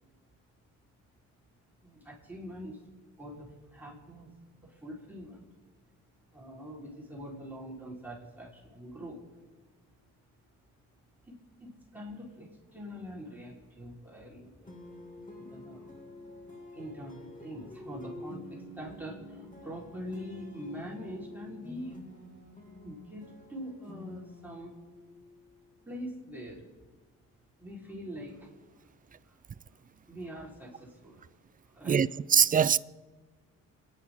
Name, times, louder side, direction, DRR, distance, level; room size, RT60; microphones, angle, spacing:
voice 1, 1.8-2.8 3.2-4.3 4.6-5.5 6.3-9.2 11.2-14.6 15.4-16.0 16.7-22.0 22.8-24.7 25.8-26.7 27.6-28.5 29.2-29.4 30.1-31.3 31.7-32.0, equal, 5° right, 4.1 m, -44 dB
sound 1, 14.6-25.8, left 1 dB, 25° left, 2.7 m, -48 dB
voice 2, 31.9-32.8, right 7 dB, 30° right, 0.4 m, -23 dB
29.5 x 10.0 x 3.7 m
cardioid pair, 90°, 30 cm